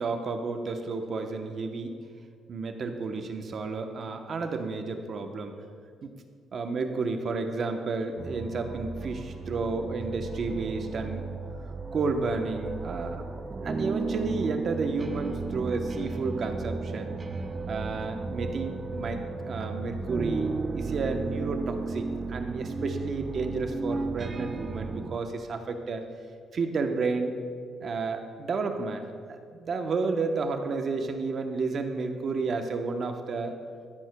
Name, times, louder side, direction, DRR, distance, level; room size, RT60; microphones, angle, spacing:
voice 1, 0.0-2.0 2.5-5.5 6.0-6.1 6.5-11.3 11.9-13.3 13.6-17.2 17.7-26.0 26.5-27.3 27.8-33.5, right 4 dB, 45° right, 5 dB, 0.8 m, -31 dB
sound 1, 8.2-25.2, right 4 dB, 25° right, 0.4 m, -34 dB
13.0 x 10.5 x 2.2 m, 2.1 s
cardioid pair, 125°, 0 cm